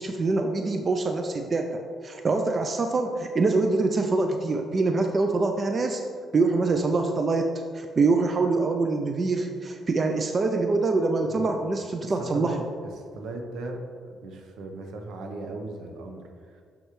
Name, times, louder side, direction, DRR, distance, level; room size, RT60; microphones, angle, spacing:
voice 1, 0.0-6.0 6.3-12.5, right 3 dB, 40° right, 5 dB, 0.4 m, -25 dB
voice 2, 11.3-11.7 12.0-12.6 13.0-16.6, right 2 dB, 80° right, 3 dB, 0.8 m, -38 dB
6.4 x 6.3 x 3.1 m, 2.1 s
cardioid pair, 90°, 0 cm